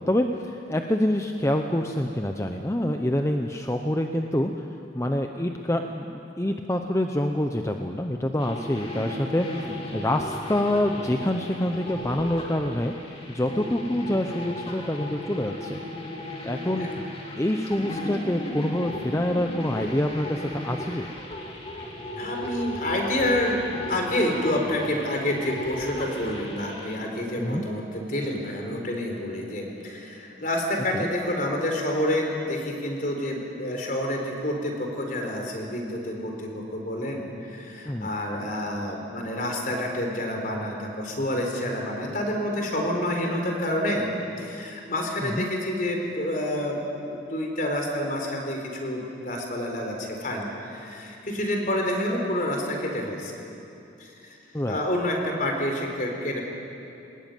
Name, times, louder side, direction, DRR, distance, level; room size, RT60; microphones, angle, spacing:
voice 1, 0.0-4.6 4.9-12.9 13.3-15.8 16.4-16.9 17.4-21.1 27.4-27.7 30.9-31.1 37.9-38.1 45.2-45.5 54.5-54.8, left 1 dB, 15° left, 4 dB, 0.8 m, -26 dB
sound 1, 8.4-27.0, left 1 dB, 30° left, 2.7 m, -36 dB
voice 2, 9.5-9.8 16.8-17.0 22.0-23.6 23.9-44.1 44.4-53.3 54.0-54.4 54.7-56.4, left 1 dB, 50° left, 2 dB, 4.1 m, -28 dB
22.5 x 20.0 x 9.4 m, 2.8 s
head